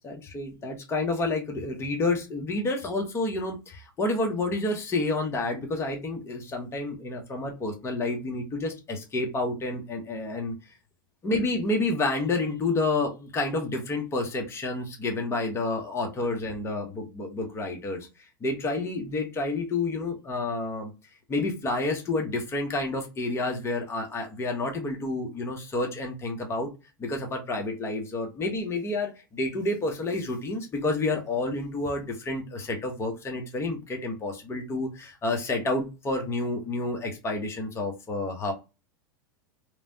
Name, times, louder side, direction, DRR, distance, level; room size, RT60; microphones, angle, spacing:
voice 1, 0.0-10.5 11.2-18.1 18.4-20.9 21.3-26.7 27.0-38.5, left 2 dB, 20° left, 2 dB, 0.9 m, -29 dB
3.1 x 2.1 x 2.7 m, 0.28 s
hypercardioid pair, 100°, 12 cm